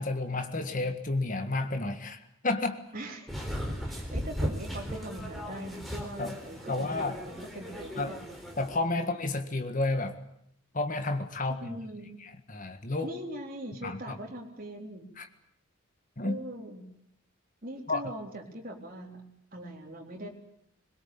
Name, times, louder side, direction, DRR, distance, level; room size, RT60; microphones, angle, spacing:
voice 1, 0.0-2.2 2.4-2.8 6.2-6.3 6.7-7.1 8.0-8.1 8.6-10.2 10.7-11.8 12.2-13.1 13.8-14.1 15.2-15.3 16.2-16.4 17.9-18.0, left 2 dB, 35° left, 7 dB, 1.7 m, -31 dB
voice 2, 2.9-3.3 3.8-8.2 8.9-9.2 11.5-12.2 13.0-15.1 16.2-16.9 17.6-19.2 19.5-20.3, right 1 dB, 40° right, 1 dB, 3.9 m, -41 dB
sound 1, 3.3-8.8, equal, ahead, 4.1 m, -37 dB
22.0 x 21.5 x 8.7 m, 0.73 s
head